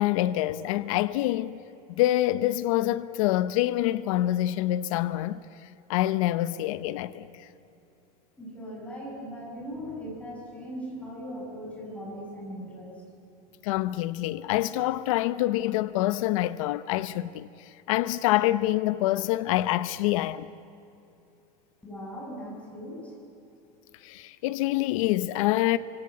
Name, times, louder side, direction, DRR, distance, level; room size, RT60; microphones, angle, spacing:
voice 1, 0.0-1.6 2.0-7.5 13.6-20.5 24.0-25.8, left 15 dB, 55° left, 0.8 m, -26 dB
voice 2, 8.4-13.0 21.8-23.1, equal, 5° left, 7.8 m, -39 dB
25.0 x 25.0 x 8.6 m
supercardioid pair, 170°, 20 cm